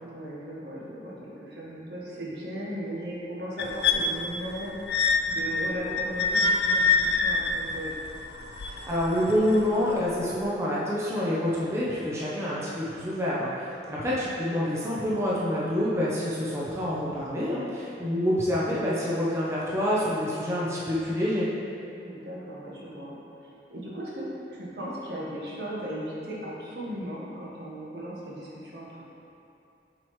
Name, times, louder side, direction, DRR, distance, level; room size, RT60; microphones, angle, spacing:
voice 1, 0.0-4.7 5.3-7.9 13.8-14.1 22.0-23.2 23.4-29.0, equal, 65° right, -6 dB, 1.3 m, -37 dB
sound 1, 3.6-9.7 10.4-10.5, left 4 dB, 65° left, 0.4 m, -26 dB
voice 2, 8.6-21.5, left 1 dB, 15° right, -7 dB, 0.7 m, -27 dB
7.4 x 4.6 x 3.2 m, 2.8 s
head